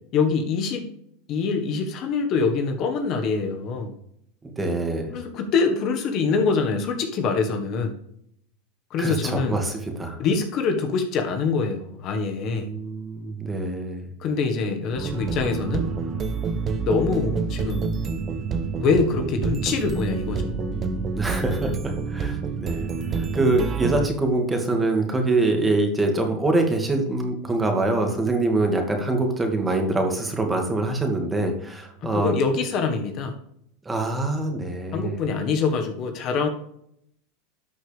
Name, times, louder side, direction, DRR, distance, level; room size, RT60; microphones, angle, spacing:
voice 1, 0.1-0.9 1.3-3.9 5.1-7.9 8.9-9.6 10.2-12.7 14.2-15.9 16.8-17.9 18.8-20.8 32.0-33.3 34.9-36.5, left 4 dB, 45° left, 5 dB, 1.6 m, -24 dB
voice 2, 4.6-5.1 9.0-10.2 12.4-14.1 21.1-32.3 33.9-35.2, right 2 dB, 15° right, 3 dB, 2.2 m, -24 dB
sound 1, 14.9-24.1, right 4 dB, 30° right, 0.9 m, -28 dB
12.5 x 6.3 x 3.5 m, 0.73 s
supercardioid pair, 115°, 0 cm